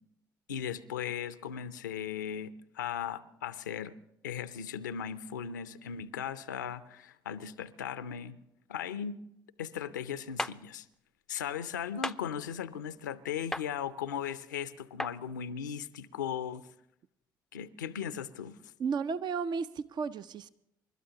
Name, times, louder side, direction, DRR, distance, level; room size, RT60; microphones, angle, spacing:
voice 1, 0.5-3.9 4.2-8.4 8.7-9.2 9.6-10.9 11.3-16.7 17.5-18.7, left 8 dB, 85° left, 14 dB, 0.5 m, -37 dB
sound 1, 10.4-10.6 12.0-12.2 13.5-13.7 15.0-15.1, left 1 dB, 5° left, 0.5 m, -33 dB
voice 2, 18.8-20.5, right 5 dB, 50° right, 13 dB, 0.5 m, -33 dB
29.5 x 12.5 x 2.8 m, 0.77 s
figure-of-eight pair, 45°, 10 cm